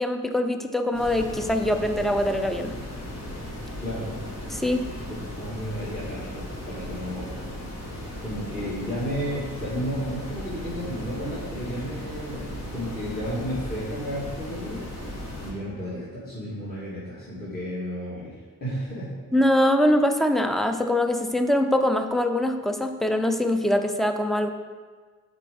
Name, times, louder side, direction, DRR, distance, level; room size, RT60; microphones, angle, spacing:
voice 1, 0.0-2.7 4.5-4.9 19.3-24.5, left 1 dB, ahead, 7 dB, 0.5 m, -23 dB
sound 1, 0.9-15.5, left 1 dB, 50° left, 1.9 m, -36 dB
voice 2, 3.8-4.2 5.1-7.4 8.2-14.8 15.4-19.2, equal, 25° left, -9 dB, 2.3 m, -33 dB
7.4 x 4.4 x 5.3 m, 1.5 s
cardioid pair, 75°, 34 cm